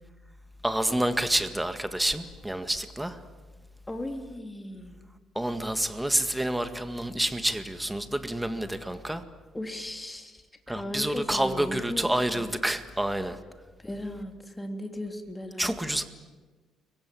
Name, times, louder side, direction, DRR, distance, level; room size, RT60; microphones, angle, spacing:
voice 1, 0.6-3.2 5.4-9.2 10.7-13.4 15.6-16.0, right 1 dB, 5° right, 9 dB, 1.9 m, -28 dB
voice 2, 3.9-5.0 9.5-10.4 10.7-12.1 12.4-12.5 13.8-15.8, left 1 dB, 10° left, 4 dB, 3.4 m, -36 dB
30.0 x 23.5 x 7.8 m, 1.3 s
cardioid pair, 120°, 0 cm